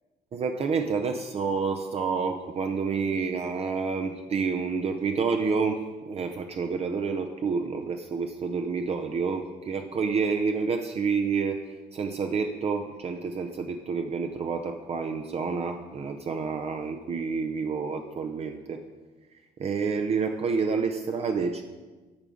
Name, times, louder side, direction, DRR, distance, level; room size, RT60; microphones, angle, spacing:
voice 1, 0.3-18.8 19.6-21.6, right 5 dB, 35° right, 5 dB, 0.6 m, -29 dB
8.9 x 4.9 x 7.0 m, 1.3 s
cardioid pair, 110°, 17 cm